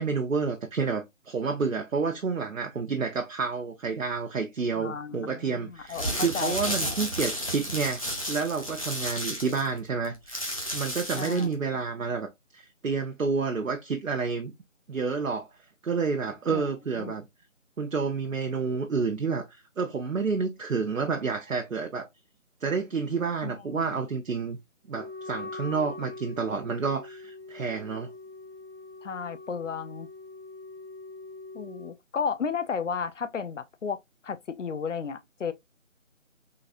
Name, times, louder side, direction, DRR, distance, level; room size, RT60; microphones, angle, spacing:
voice 1, 0.0-8.0 8.3-10.4 10.7-14.5 14.9-15.5 15.8-17.3 17.8-22.1 22.6-24.6 24.9-28.1, right 5 dB, 85° right, 0.7 m, -29 dB
voice 2, 4.8-7.0 11.1-11.5 16.5-16.6 17.0-17.1 23.4-23.9 29.0-30.1 31.5-34.0 34.2-35.5, left 6 dB, 70° left, 0.6 m, -33 dB
sound 1, 5.8-11.5, equal, 25° left, 0.7 m, -32 dB
Wind instrument woodwind instrument, 24.9-32.0, left 3 dB, 40° right, 0.4 m, -43 dB
3.8 x 2.6 x 2.4 m
figure-of-eight pair, 160°, 39 cm